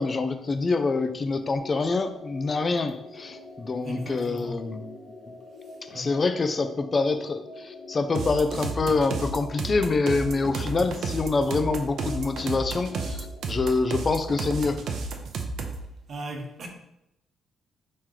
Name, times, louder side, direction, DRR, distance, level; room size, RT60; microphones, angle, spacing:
voice 1, 0.0-4.9 5.9-14.8, left 3 dB, 35° left, 0.4 m, -26 dB
sound 1, 1.5-13.4, left 2 dB, 80° left, 0.9 m, -45 dB
voice 2, 3.8-4.7 5.6-6.2 15.7-15.8 16.1-16.7, right 1 dB, 50° right, 0.9 m, -38 dB
sound 2, 8.1-15.8, right 4 dB, 70° right, 0.5 m, -32 dB
4.3 x 3.1 x 3.8 m
cardioid pair, 90°, 0 cm